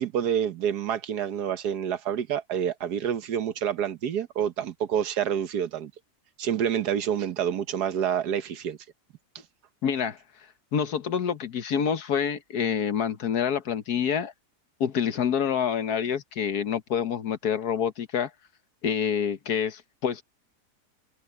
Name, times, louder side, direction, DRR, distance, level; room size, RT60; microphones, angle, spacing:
voice 1, 0.0-5.9 6.4-8.8, right 9 dB, 80° right, 1.6 m, -28 dB
voice 2, 9.8-10.2 10.7-14.3 14.8-18.3 18.8-20.2, left 7 dB, 75° left, 1.7 m, -27 dB
omnidirectional pair, 1.7 m